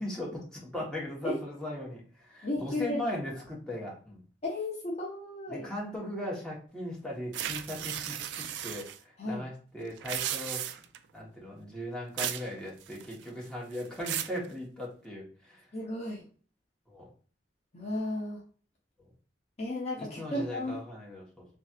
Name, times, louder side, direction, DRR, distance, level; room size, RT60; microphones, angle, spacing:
voice 1, 0.0-4.2 5.5-10.7 11.1-15.6 16.9-17.0 20.0-21.4, left 1 dB, 5° left, -5 dB, 1.1 m, -38 dB
voice 2, 2.4-3.0 4.4-5.7 9.2-9.5 15.7-16.2 17.7-18.4 19.6-20.8, left 1 dB, 40° left, -2 dB, 0.7 m, -34 dB
sound 1, 7.3-9.0 9.9-11.0 12.2-12.5 12.8-13.3 13.7-14.4, right 10 dB, 75° right, 0.3 m, -35 dB
3.2 x 2.7 x 2.3 m, 0.41 s
head